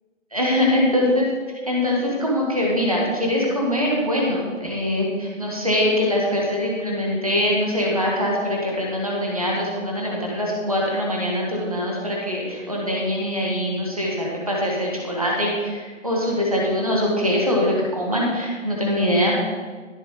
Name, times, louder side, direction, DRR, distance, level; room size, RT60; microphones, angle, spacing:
voice 1, 0.3-1.3 1.6-19.3, left 1 dB, 25° right, -3 dB, 1.7 m, -23 dB
11.0 x 7.6 x 4.8 m, 1.5 s
figure-of-eight pair, 180°, 40 cm